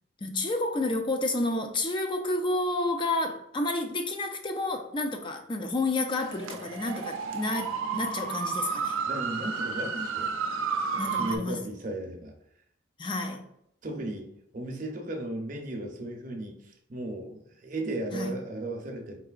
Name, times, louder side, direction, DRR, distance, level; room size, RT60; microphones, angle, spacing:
voice 1, 0.2-9.0 11.0-11.6 13.0-13.4 18.1-18.4, left 2 dB, 25° left, 4 dB, 0.4 m, -30 dB
sound 1, 6.1-11.4, right 5 dB, 85° right, 0.5 m, -32 dB
voice 2, 9.1-10.3 10.9-12.3 13.8-14.3 14.5-19.2, right 1 dB, 40° right, 3 dB, 0.7 m, -35 dB
4.6 x 3.8 x 2.4 m, 0.75 s
head